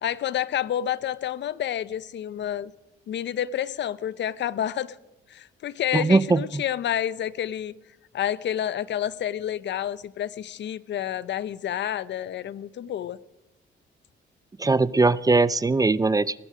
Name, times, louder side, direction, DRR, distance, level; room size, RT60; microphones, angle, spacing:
voice 1, 0.0-2.7 3.1-5.0 5.3-7.7 8.1-13.2, left 10 dB, 65° left, 0.7 m, -29 dB
voice 2, 5.9-6.6 14.6-16.5, right 3 dB, 20° right, 0.5 m, -21 dB
19.0 x 15.5 x 5.0 m
cardioid pair, 90°, 20 cm